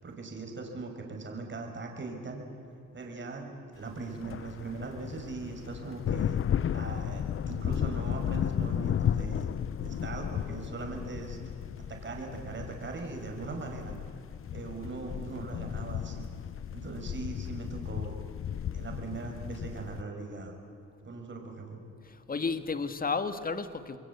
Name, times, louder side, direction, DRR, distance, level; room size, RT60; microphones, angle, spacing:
voice 1, 0.0-2.4 2.9-6.4 6.7-9.5 9.8-11.4 11.9-14.0 14.5-16.2 16.7-18.2 18.7-20.5 21.0-21.8, right 3 dB, 40° right, 2 dB, 5.8 m, -40 dB
sound 1, 4.0-20.0, left 9 dB, 45° left, 0.7 m, -34 dB
voice 2, 22.0-24.0, left 4 dB, 30° left, 10 dB, 1.8 m, -32 dB
28.0 x 22.0 x 8.5 m, 2.7 s
cardioid pair, 90°, 30 cm